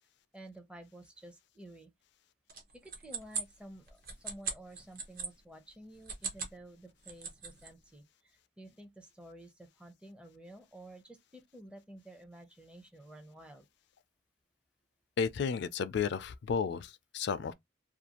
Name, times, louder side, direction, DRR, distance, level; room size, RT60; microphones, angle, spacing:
voice 1, 0.3-1.9 2.7-13.6, right 1 dB, 5° right, 0.5 m, -52 dB
sound 1, 2.5-5.3 5.9-6.6 6.9-7.7, right 5 dB, 50° right, 0.7 m, -39 dB
voice 2, 15.2-17.5, left 6 dB, 60° left, 0.3 m, -33 dB
2.5 x 2.3 x 2.9 m
head